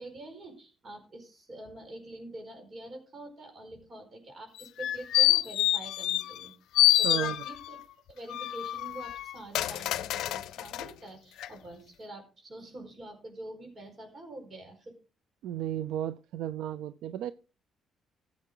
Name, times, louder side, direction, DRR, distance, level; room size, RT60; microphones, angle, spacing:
voice 1, 0.0-6.5 7.0-7.8 8.1-14.9, right 1 dB, 40° right, 5 dB, 4.7 m, -45 dB
sound 1, 4.6-6.5 6.7-7.8 8.3-10.9 11.4-11.5, left 14 dB, 80° left, 0.5 m, -27 dB
voice 2, 7.0-7.4 15.4-17.3, right 11 dB, 85° right, 15 dB, 0.5 m, -34 dB
14.5 x 7.4 x 3.8 m, 0.34 s
cardioid pair, 90°, 0 cm